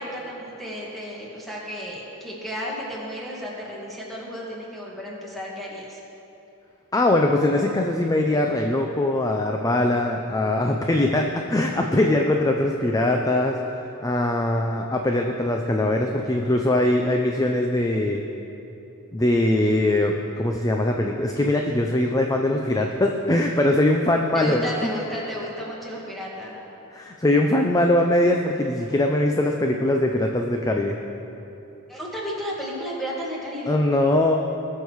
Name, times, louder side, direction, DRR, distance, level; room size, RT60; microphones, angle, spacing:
voice 1, 0.0-6.0 24.3-26.6 31.9-33.8, equal, ahead, -5 dB, 2.0 m, -33 dB
voice 2, 6.9-13.6 14.0-18.2 19.1-24.9 26.9-31.0 33.7-34.4, left 1 dB, 15° left, 2 dB, 0.5 m, -21 dB
20.0 x 6.6 x 4.7 m, 3.0 s
head